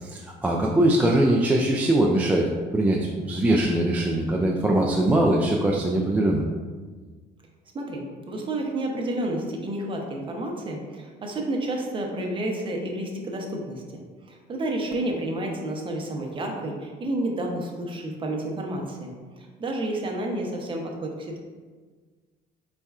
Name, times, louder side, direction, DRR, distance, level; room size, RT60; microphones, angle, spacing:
voice 1, 0.0-6.4, right 1 dB, 10° right, -2 dB, 0.3 m, -22 dB
voice 2, 7.7-21.4, right 1 dB, 30° right, 1 dB, 0.7 m, -30 dB
4.4 x 4.1 x 2.4 m, 1.4 s
cardioid pair, 125°, 18 cm